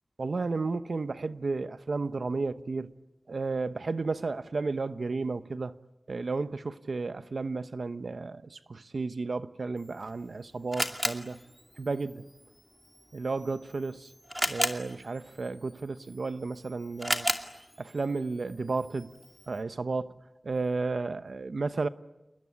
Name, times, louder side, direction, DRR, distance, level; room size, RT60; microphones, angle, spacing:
voice 1, 0.2-2.9 3.3-5.8 6.1-11.4 11.8-12.2 13.1-14.1 14.5-17.3 17.8-19.1 19.5-20.1 20.4-21.9, right 3 dB, 85° right, 1.0 m, -33 dB
Camera, 9.8-19.6, equal, ahead, 2.5 m, -37 dB
29.0 x 21.0 x 9.5 m
wide cardioid pair, 50°, 0 cm